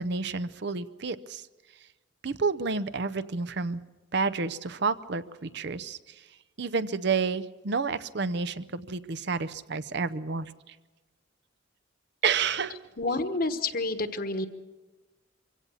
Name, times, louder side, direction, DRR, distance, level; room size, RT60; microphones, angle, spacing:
voice 1, 0.0-1.4 2.2-3.8 4.1-6.0 6.6-10.5 12.2-12.8 13.1-13.2, right 4 dB, 60° right, 14 dB, 0.7 m, -30 dB
voice 2, 13.0-14.5, left 2 dB, 45° left, 10 dB, 1.2 m, -29 dB
24.0 x 16.5 x 7.1 m, 1.2 s
head